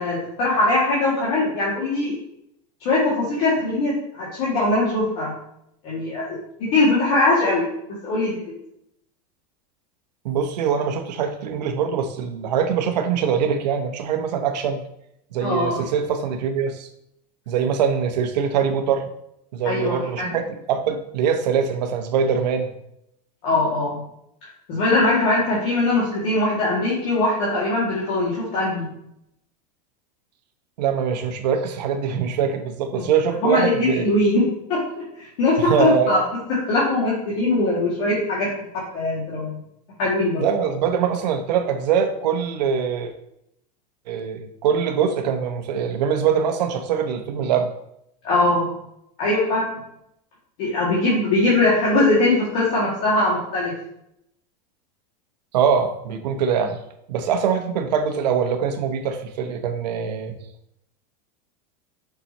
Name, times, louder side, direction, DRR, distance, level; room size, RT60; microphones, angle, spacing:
voice 1, 0.0-2.1 2.8-5.3 5.8-7.7 8.0-8.4 15.4-15.8 19.6-20.3 23.4-24.0 24.7-28.9 32.9-33.1 33.4-34.8 35.2-36.2 36.5-38.5 38.9-39.6 40.0-40.4 48.2-48.7 49.2-49.6 50.6-53.7, left 2 dB, 50° left, -7 dB, 2.4 m, -21 dB
voice 2, 10.2-14.8 15.3-16.9 17.5-19.1 19.5-22.7 30.8-34.1 35.6-36.2 40.4-43.1 44.1-47.7 55.5-56.8 57.1-60.4, right 7 dB, 85° right, 6 dB, 1.1 m, -23 dB
7.0 x 6.0 x 3.1 m, 0.77 s
supercardioid pair, 165°, 21 cm